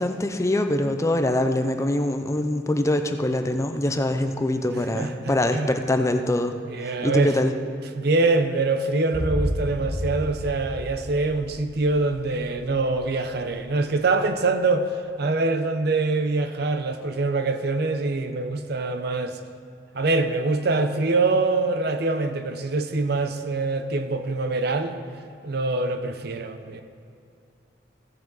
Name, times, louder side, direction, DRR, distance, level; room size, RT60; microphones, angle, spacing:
voice 1, 0.0-6.6 6.8-7.5, left 1 dB, 15° left, 7 dB, 0.5 m, -24 dB
voice 2, 4.9-5.7 6.7-7.3 7.9-14.9 15.2-19.4 19.9-25.0 25.4-26.8, right 3 dB, 60° right, 8 dB, 0.7 m, -24 dB
sound 1, 9.1-13.4 13.6-13.7, equal, 85° right, 1.5 m, -31 dB
15.5 x 7.5 x 4.0 m, 2.5 s
head